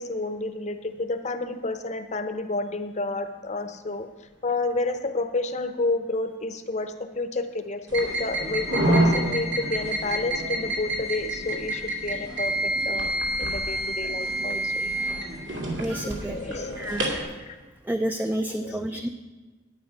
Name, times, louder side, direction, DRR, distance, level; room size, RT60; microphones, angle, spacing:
voice 1, 0.0-4.1 4.4-13.1 13.4-14.7 16.0-17.0 17.4-17.6 18.5-19.0, left 2 dB, 40° left, 8 dB, 0.8 m, -30 dB
sound 1, 7.9-17.2, right 1 dB, 70° right, 2.4 m, -27 dB
voice 2, 15.8-17.3 17.8-19.1, right 1 dB, 10° right, 6 dB, 0.4 m, -30 dB
11.0 x 9.1 x 5.0 m, 1.3 s
head